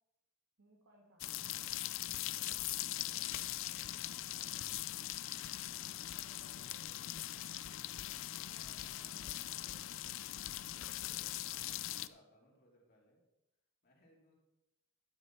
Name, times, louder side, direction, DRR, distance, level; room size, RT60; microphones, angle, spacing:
voice 1, 0.6-1.3 6.1-7.1 8.5-10.2 10.5-11.2, right 1 dB, 65° right, -1 dB, 1.8 m, -67 dB
sound 1, 1.2-12.1, left 14 dB, 65° left, 0.4 m, -41 dB
voice 2, 2.0-5.0 7.8-8.6 10.7-13.3 13.8-14.4, equal, 45° left, -2 dB, 2.9 m, -68 dB
11.0 x 6.1 x 5.9 m, 0.92 s
head